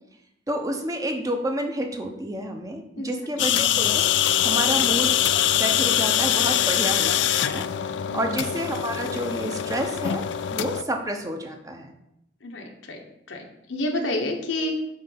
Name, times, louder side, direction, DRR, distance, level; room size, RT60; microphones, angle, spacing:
voice 1, 0.5-4.0 4.4-5.2 5.4-7.7 8.1-11.9, right 1 dB, 20° right, 4 dB, 0.7 m, -29 dB
voice 2, 3.0-3.7 8.0-8.3 12.4-13.0 13.3-14.8, left 1 dB, 85° left, 3 dB, 1.2 m, -30 dB
sound 1, 3.4-10.8, left 11 dB, 70° left, 0.4 m, -23 dB
7.9 x 3.3 x 5.6 m, 0.81 s
head